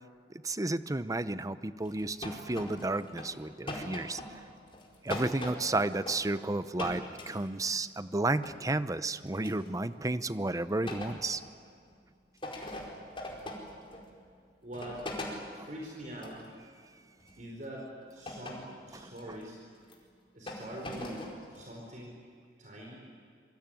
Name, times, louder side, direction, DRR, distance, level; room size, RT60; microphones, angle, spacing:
voice 1, 0.4-4.2 5.0-11.4 15.6-15.7 18.9-19.1, right 2 dB, 20° right, 13 dB, 0.7 m, -32 dB
sound 1, 1.8-3.3 3.7-6.4 6.7-7.7 8.4-8.7 9.3-9.7 10.9-11.5 11.9-12.0 12.4-14.1 14.7-15.4 16.2-16.5 17.2-17.4 18.3-18.9 19.2-19.4 19.8-19.9 20.5-21.6, left 1 dB, 30° left, 4.7 m, -41 dB
voice 2, 14.6-15.1 15.5-16.5 17.4-19.6 20.3-22.2 22.6-23.0, right 1 dB, 45° right, -1 dB, 4.8 m, -44 dB
26.0 x 24.0 x 9.1 m, 2.2 s
head